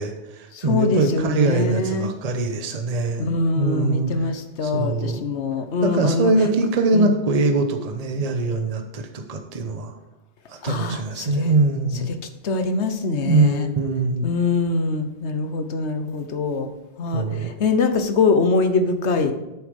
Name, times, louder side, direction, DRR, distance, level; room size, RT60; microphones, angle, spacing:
voice 1, 0.0-3.3 3.5-4.1 4.6-5.2 5.8-9.9 10.5-12.1 13.2-14.3 17.1-17.5, right 2 dB, 35° right, 5 dB, 0.9 m, -22 dB
voice 2, 0.5-2.1 3.2-6.3 6.9-7.1 10.6-11.5 12.1-12.2 12.4-13.7 14.2-16.7 17.0-19.3, left 3 dB, 70° left, 8 dB, 1.2 m, -23 dB
9.1 x 6.9 x 5.2 m, 1.0 s
omnidirectional pair, 1.2 m